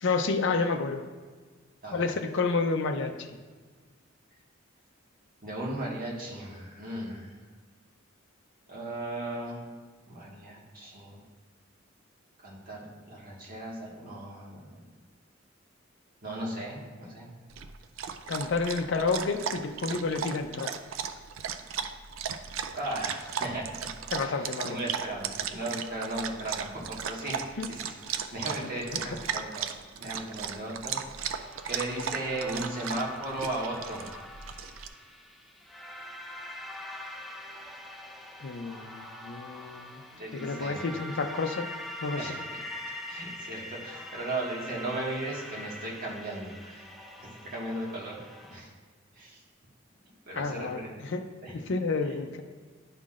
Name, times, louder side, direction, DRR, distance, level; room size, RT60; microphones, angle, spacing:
voice 1, 0.0-1.0 1.9-3.1 18.3-20.7 24.1-24.8 27.6-27.7 28.6-29.2 38.4-40.0 40.3-41.7 42.0-42.4 50.3-51.3 51.5-52.4, left 4 dB, 65° left, 5 dB, 0.5 m, -30 dB
voice 2, 5.4-7.3 8.7-9.6 10.1-11.2 12.4-14.7 16.2-17.3 22.7-23.7 24.2-29.7 30.0-34.1 40.1-40.8 42.2-46.9 47.2-48.2 48.5-48.7 49.1-49.4 50.3-51.0 51.4-51.5, right 1 dB, 45° right, -4 dB, 1.6 m, -36 dB
Dog, 17.5-34.9, right 7 dB, 75° right, 0.4 m, -36 dB
sound 1, 31.2-48.6, left 1 dB, ahead, 0.5 m, -43 dB
10.5 x 5.7 x 2.5 m, 1.4 s
head